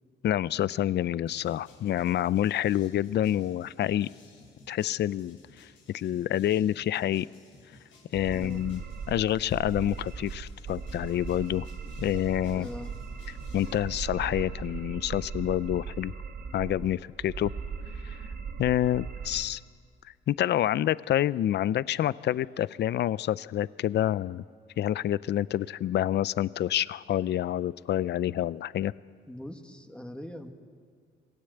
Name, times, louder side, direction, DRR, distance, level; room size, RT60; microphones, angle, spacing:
voice 1, 0.2-4.1 4.7-7.3 8.1-8.8 9.1-11.7 12.0-12.7 13.5-16.1 16.5-17.5 18.0-18.2 18.6-19.6 20.3-24.4 24.8-28.9, left 12 dB, 60° left, 18 dB, 0.5 m, -28 dB
sound 1, 1.3-13.8, left 3 dB, 80° left, 7.5 m, -56 dB
sound 2, 8.1-19.4, right 5 dB, 55° right, 2.8 m, -38 dB
voice 2, 8.3-8.7 12.5-13.0 29.3-30.5, left 1 dB, 5° left, 4 dB, 2.0 m, -41 dB
27.0 x 18.5 x 7.9 m, 2.1 s
cardioid pair, 90°, 20 cm